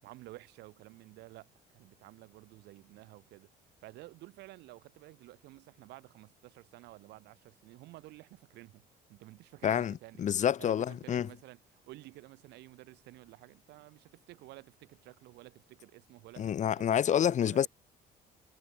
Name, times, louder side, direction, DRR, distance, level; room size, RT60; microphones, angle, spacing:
voice 1, 0.0-3.5 3.8-10.3 10.6-17.7, right 18 dB, 85° right, 7.5 m, -52 dB
voice 2, 9.6-11.3 16.4-17.7, left 9 dB, 45° left, 1.1 m, -28 dB
cardioid pair, 110°, 17 cm